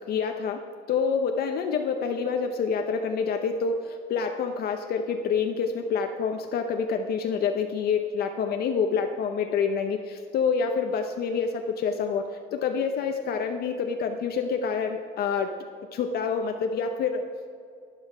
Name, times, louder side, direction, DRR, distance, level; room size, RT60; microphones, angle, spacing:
voice 1, 0.1-15.6 15.9-17.2, left 6 dB, 55° left, 5 dB, 0.7 m, -27 dB
11.5 x 10.0 x 4.9 m, 2.4 s
cardioid pair, 150°, 20 cm